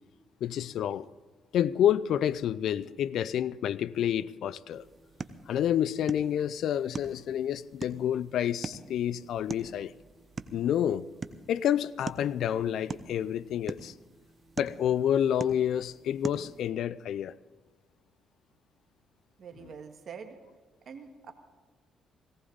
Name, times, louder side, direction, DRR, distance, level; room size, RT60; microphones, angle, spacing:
voice 1, 0.4-1.1 1.5-4.8 5.5-9.9 10.5-11.1 11.5-13.9 14.6-17.3, left 10 dB, 75° left, 0.4 m, -29 dB
sound 1, 4.7-16.7, right 4 dB, 35° right, 0.9 m, -44 dB
voice 2, 19.4-20.4 20.8-21.3, right 6 dB, 55° right, 1.7 m, -45 dB
18.0 x 17.5 x 4.0 m
cardioid pair, 90°, 0 cm